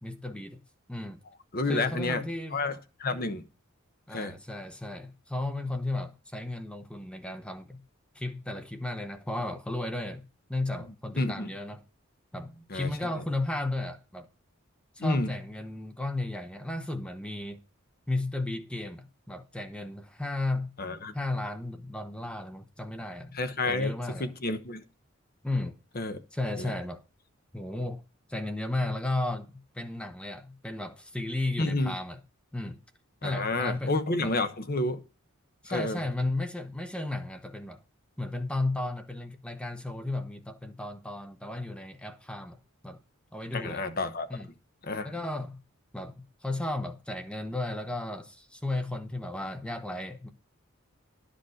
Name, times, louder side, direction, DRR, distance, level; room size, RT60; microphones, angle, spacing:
voice 1, 0.0-0.6 0.9-1.2 1.7-2.6 4.1-7.8 8.1-11.8 12.3-14.3 15.0-17.6 18.1-20.7 21.1-23.4 23.7-24.3 25.4-25.8 26.3-27.0 27.5-28.0 28.3-32.2 32.5-32.8 33.2-34.3 35.6-37.8 38.2-43.0 43.3-43.8 44.3-44.5 45.0-45.6 45.9-50.3, left 2 dB, 5° left, 0.8 m, -34 dB
voice 2, 1.5-2.2 2.5-3.4 4.1-4.3 11.2-11.5 12.7-12.9 15.0-15.3 20.8-21.1 23.3-23.9 24.2-24.8 25.9-26.2 26.6-26.7 31.6-32.0 33.2-35.0 35.7-36.0 43.5-44.3 44.8-45.2, left 2 dB, 45° left, 1.0 m, -30 dB
12.0 x 5.1 x 6.4 m
head